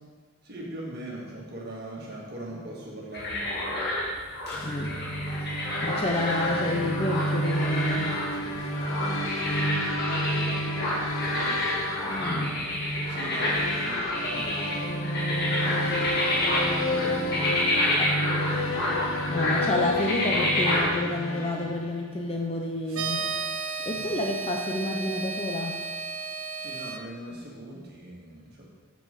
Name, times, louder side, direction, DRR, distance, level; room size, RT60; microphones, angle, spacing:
voice 1, 0.4-4.1 4.5-5.5 8.3-11.8 13.1-19.5 22.9-23.3 23.9-24.2 26.5-28.7, right 1 dB, 45° right, -4 dB, 1.8 m, -42 dB
sound 1, 3.1-20.9, left 1 dB, 50° left, 2.1 m, -29 dB
sound 2, 4.5-22.2, equal, 65° left, 1.1 m, -30 dB
voice 2, 5.8-8.2 12.0-12.6 18.0-18.1 19.3-23.2 23.9-25.8, left 1 dB, 25° left, 1 dB, 0.6 m, -29 dB
sound 3, 22.9-27.0, right 4 dB, 70° right, 0.7 m, -33 dB
7.7 x 6.0 x 6.5 m, 1.5 s
head